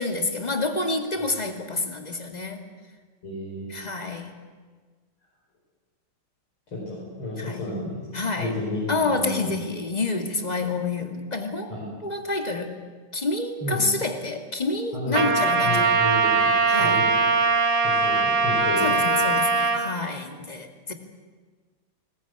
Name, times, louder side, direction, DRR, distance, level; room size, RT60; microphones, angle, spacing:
voice 1, 0.0-2.6 3.7-4.4 7.4-7.6 8.1-8.5 8.9-11.7 12.0-12.8 13.1-15.9 16.7-17.0 18.8-20.9, left 3 dB, 20° left, 5 dB, 2.0 m, -28 dB
voice 2, 3.2-3.7 6.7-8.1 8.4-9.5 11.7-11.9 13.6-13.8 14.9-15.2 15.6-17.1 17.8-19.0, left 2 dB, 75° left, -5 dB, 5.9 m, -32 dB
Trumpet, 15.1-19.8, right 4 dB, 65° right, 2.8 m, -21 dB
21.5 x 19.0 x 9.4 m, 1.4 s
omnidirectional pair, 2.4 m